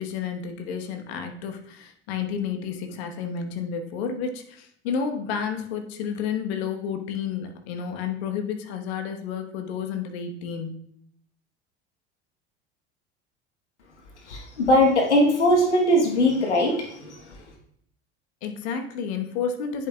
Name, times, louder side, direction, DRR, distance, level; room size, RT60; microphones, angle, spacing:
voice 1, 0.0-10.8 18.4-19.9, left 6 dB, 65° left, 5 dB, 1.2 m, -31 dB
voice 2, 14.3-17.2, left 1 dB, 85° left, 2 dB, 1.2 m, -20 dB
10.5 x 5.5 x 2.3 m, 0.68 s
hypercardioid pair, 75°, 34 cm